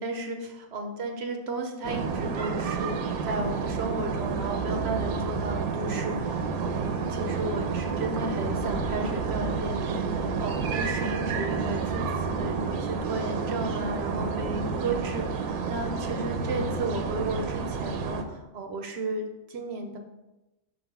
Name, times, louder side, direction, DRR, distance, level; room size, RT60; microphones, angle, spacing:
voice 1, 0.0-3.0 3.2-20.0, right 2 dB, 60° right, 4 dB, 0.8 m, -34 dB
sound 1, 1.8-18.2, right 5 dB, 85° right, 1.1 m, -30 dB
sound 2, 8.4-11.8, equal, 70° left, 1.1 m, -40 dB
6.1 x 4.0 x 4.6 m, 0.98 s
omnidirectional pair, 1.5 m